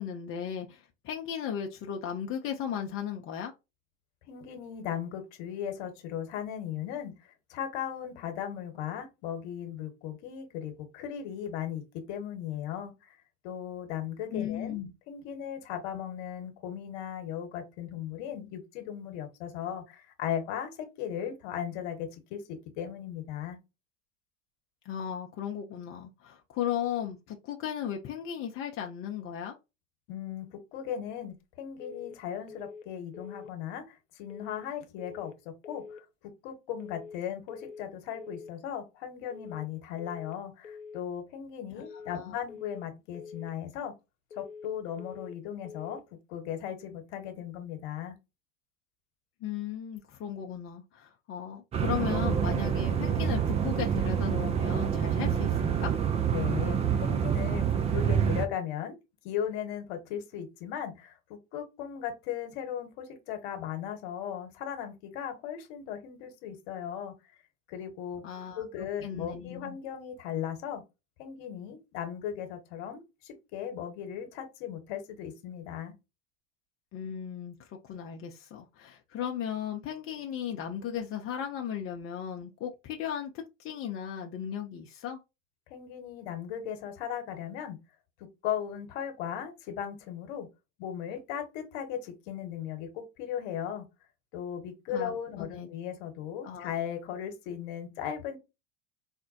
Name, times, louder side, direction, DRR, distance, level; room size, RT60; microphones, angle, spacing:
voice 1, 0.0-3.5 14.3-14.9 24.8-29.6 41.7-42.4 49.4-55.9 68.2-68.6 69.0-69.8 76.9-83.3 83.6-85.2 94.9-95.7 96.4-96.7, left 9 dB, 35° left, 0.6 m, -36 dB
voice 2, 4.3-11.8 12.1-13.2 13.4-14.8 15.1-23.6 30.1-35.3 35.7-43.9 44.3-46.0 46.3-48.1 56.3-59.0 59.2-67.1 67.7-68.2 68.6-70.8 71.2-75.9 85.7-87.8 88.4-90.5 90.8-93.8 94.3-98.4, left 9 dB, 60° left, 1.1 m, -37 dB
sound 1, 31.8-32.2 32.5-32.9 33.1-33.5 34.3-34.7 35.0-35.4 35.6-36.0 36.8-37.2 37.5-37.9 38.1-38.5 39.3-39.7 40.0-40.4 40.6-41.0 41.8-42.2 42.5-42.9 43.1-43.5 44.3-44.7 45.0-45.4 45.6-46.0, left 5 dB, 90° left, 0.5 m, -45 dB
sound 2, 51.7-58.5, right 8 dB, 20° right, 0.3 m, -27 dB
4.1 x 2.1 x 2.7 m
figure-of-eight pair, 75°, 37 cm